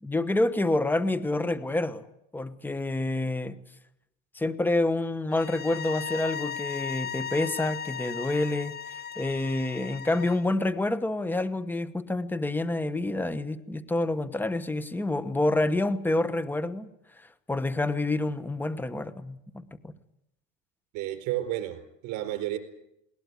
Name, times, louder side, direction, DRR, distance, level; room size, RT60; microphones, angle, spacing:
voice 1, 0.0-2.0 2.3-3.5 4.3-16.9 17.5-19.9, left 2 dB, 5° left, 1.1 m, -28 dB
sound 1, 5.3-10.5, left 7 dB, 30° left, 0.9 m, -37 dB
voice 2, 20.9-22.6, right 13 dB, 65° right, 4.6 m, -31 dB
20.5 x 18.5 x 9.6 m
supercardioid pair, 110°, 31 cm